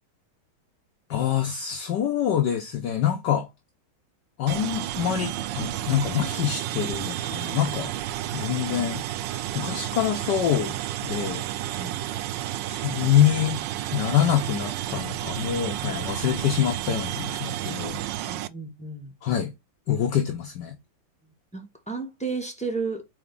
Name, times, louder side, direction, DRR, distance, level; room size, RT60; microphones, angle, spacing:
voice 1, 1.1-3.5 4.4-7.9 8.3-9.0 9.5-10.7 11.0-11.4 12.7-13.6 13.9-18.0 19.2-19.5 19.9-20.7, left 10 dB, 65° left, 1.4 m, -25 dB
sound 1, 4.5-18.5, right 13 dB, 75° right, 1.1 m, -31 dB
voice 2, 18.2-19.2 21.5-23.0, right 4 dB, 5° left, 1.2 m, -33 dB
4.9 x 4.2 x 5.3 m
omnidirectional pair, 2.2 m